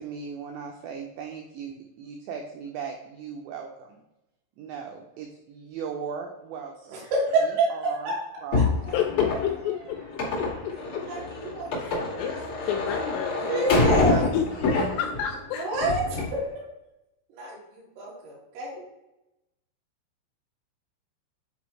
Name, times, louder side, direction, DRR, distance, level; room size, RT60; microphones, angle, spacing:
voice 1, 0.0-4.0 4.6-7.0 7.7-8.1 8.4-8.9 14.1-14.2 14.9-15.0, right 6 dB, 85° right, 3 dB, 2.5 m, -38 dB
voice 2, 6.9-8.1 8.5-8.9 9.3-9.4 10.2-10.5 11.1-12.5 13.5-14.3 15.5-16.2 17.3-18.8, right 2 dB, 65° right, -6 dB, 4.3 m, -29 dB
sound 1, 8.5-15.4 15.7-16.3, left 3 dB, 55° left, 1.5 m, -26 dB
voice 3, 8.9-10.0 10.4-10.7 11.8-12.3 12.7-15.7, left 9 dB, 85° left, 4 dB, 3.0 m, -30 dB
9.6 x 4.3 x 3.1 m, 0.93 s
omnidirectional pair, 5.8 m